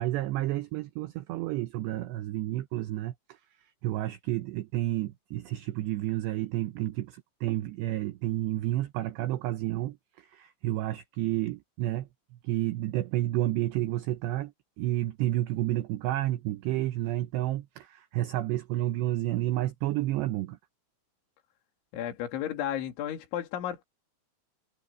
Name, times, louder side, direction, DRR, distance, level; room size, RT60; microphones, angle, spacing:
voice 1, 0.0-12.1 12.4-20.6, right 15 dB, 80° right, 2.5 m, -30 dB
voice 2, 21.9-23.8, left 10 dB, 65° left, 4.9 m, -33 dB
omnidirectional pair, 5.9 m